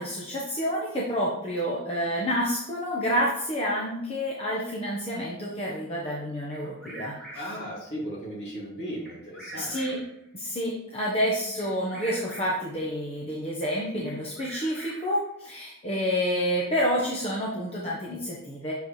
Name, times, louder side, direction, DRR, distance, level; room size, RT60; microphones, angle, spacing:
voice 1, 0.0-7.2 9.5-10.0 10.3-18.7, equal, 25° left, -5 dB, 1.0 m, -29 dB
Bird vocalization bird call bird song, 6.5-7.7 9.0-10.2 11.6-12.8 14.1-15.3, right 2 dB, ahead, 1.7 m, -44 dB
voice 2, 7.3-10.0, equal, 50° left, -4 dB, 2.5 m, -36 dB
6.9 x 5.1 x 3.2 m, 0.79 s
head